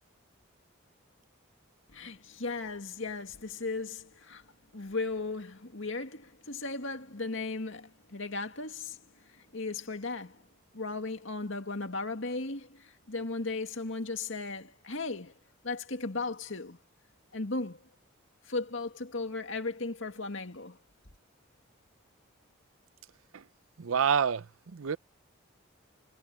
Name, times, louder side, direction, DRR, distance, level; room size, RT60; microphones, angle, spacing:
voice 1, 1.9-4.4 4.7-9.0 9.5-10.4 10.7-15.3 15.6-16.8 17.3-17.8 18.5-20.8, left 3 dB, 65° left, 2.2 m, -36 dB
voice 2, 23.8-25.0, right 7 dB, 75° right, 0.6 m, -28 dB
head